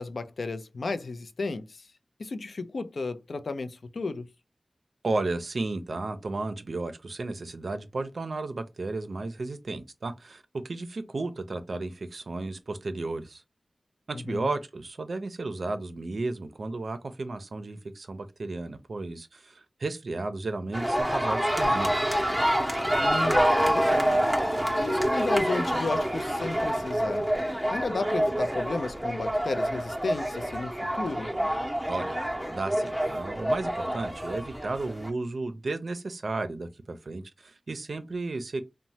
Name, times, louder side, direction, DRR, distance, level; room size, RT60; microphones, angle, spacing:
voice 1, 0.0-1.8 2.2-4.3 14.3-14.5 23.0-24.2 24.8-27.3 27.7-31.3, left 3 dB, 85° left, 0.3 m, -33 dB
voice 2, 5.0-13.4 14.1-22.0 31.9-32.2 32.5-38.6, right 3 dB, 70° right, 0.4 m, -33 dB
sound 1, 20.7-35.1, equal, 5° right, 0.6 m, -27 dB
3.0 x 2.1 x 2.7 m
wide cardioid pair, 90°, 0 cm